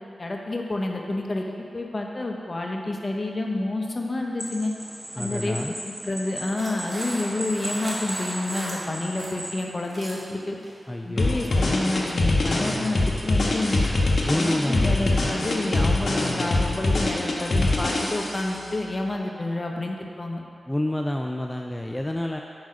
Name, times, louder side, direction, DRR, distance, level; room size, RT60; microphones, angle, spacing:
voice 1, 0.2-4.7 5.2-10.6 11.0-13.9 14.3-20.4, left 2 dB, 40° left, 1 dB, 0.8 m, -29 dB
sound 1, 4.4-9.6, right 1 dB, 25° right, 1.7 m, -36 dB
voice 2, 5.2-5.7 10.9-11.5 14.3-15.0 20.7-22.4, left 1 dB, 15° left, 2 dB, 0.3 m, -28 dB
sound 2, 6.6-9.3 9.7-10.3 10.6-10.9 11.5-11.7, right 1 dB, 50° right, 1.5 m, -37 dB
sound 3, 11.2-18.5, left 2 dB, 60° left, 1.1 m, -23 dB
6.2 x 4.8 x 5.2 m, 2.5 s
cardioid pair, 55°, 0 cm